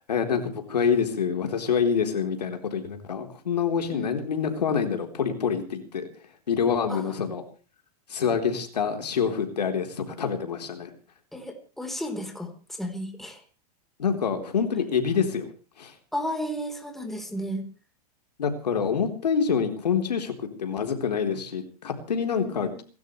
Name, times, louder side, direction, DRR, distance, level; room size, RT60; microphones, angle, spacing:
voice 1, 0.1-6.1 6.5-7.4 8.1-10.9 14.0-15.5 15.8-15.9 18.4-20.3 20.6-22.7, left 6 dB, 90° left, 5 dB, 4.0 m, -26 dB
voice 2, 11.3-12.5 12.8-13.4 16.1-17.6 22.3-22.8, equal, ahead, 4 dB, 4.0 m, -33 dB
29.5 x 13.0 x 3.3 m, 0.37 s
hypercardioid pair, 120°, 20 cm